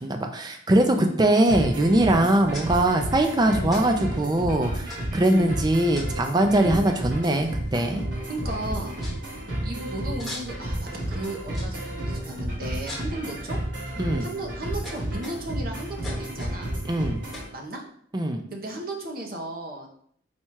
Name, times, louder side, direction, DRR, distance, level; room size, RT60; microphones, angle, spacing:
voice 1, 0.0-8.0 14.0-14.2 16.9-17.2 18.1-18.4, right 1 dB, 20° right, 5 dB, 0.4 m, -22 dB
sound 1, 1.5-1.9 2.5-2.7 3.7-3.8 4.1-4.2 4.9-5.3 5.9-6.3 7.3-7.4 7.7-8.1 8.4-8.5 9.0-9.2 10.2-10.7 11.5-11.9 12.9-13.2 13.9-14.2 14.8-15.6 16.0-16.6 17.3-17.5, left 1 dB, ahead, 1.0 m, -41 dB
sound 2, 1.5-17.5, right 1 dB, 70° right, 1.8 m, -32 dB
voice 2, 8.3-9.0 9.6-13.6 14.2-16.7 17.5-17.8 18.5-19.9, right 1 dB, 50° right, 2 dB, 0.7 m, -34 dB
4.2 x 2.3 x 4.6 m, 0.64 s
head